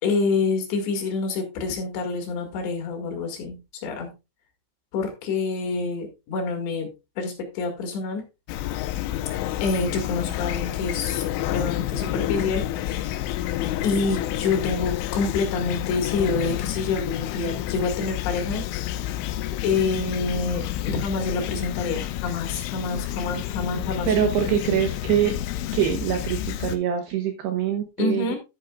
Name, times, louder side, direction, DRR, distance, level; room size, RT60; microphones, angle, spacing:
voice 1, 0.0-4.1 4.9-6.9 7.2-8.2 9.6-13.2 13.8-18.6 19.6-24.1 28.0-28.4, left 4 dB, 65° left, 3 dB, 3.8 m, -27 dB
Fowl / Chirp tweet, 8.5-26.8, left 13 dB, 85° left, 2.9 m, -29 dB
voice 2, 24.1-25.3 25.7-28.4, right 9 dB, 75° right, 5 dB, 2.5 m, -24 dB
11.0 x 8.9 x 2.4 m, 0.26 s
omnidirectional pair, 6.0 m